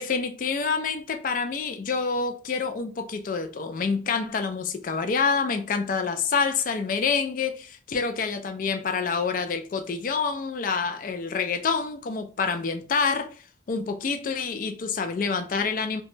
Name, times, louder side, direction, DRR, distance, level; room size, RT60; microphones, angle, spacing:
voice 1, 0.0-13.3 13.7-16.0, left 5 dB, 45° left, 0.3 m, -27 dB
2.9 x 2.1 x 3.1 m
head